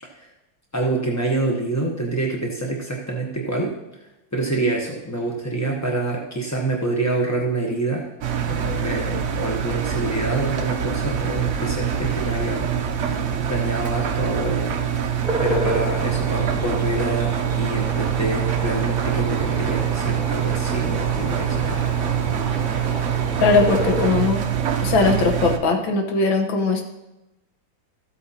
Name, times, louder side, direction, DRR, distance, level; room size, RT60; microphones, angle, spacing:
voice 1, 0.7-3.7 4.3-8.1 8.4-12.7 13.0-14.8 15.4-21.8, right 2 dB, 20° left, -1 dB, 0.4 m, -26 dB
Engine, 8.2-25.6, right 8 dB, 70° right, 0.6 m, -24 dB
sound 1, 15.2-24.1, right 1 dB, ahead, 2.6 m, -31 dB
voice 2, 23.4-24.4 24.8-26.8, left 4 dB, 80° left, 3 dB, 1.9 m, -19 dB
14.0 x 8.3 x 2.8 m, 0.97 s
omnidirectional pair, 2.1 m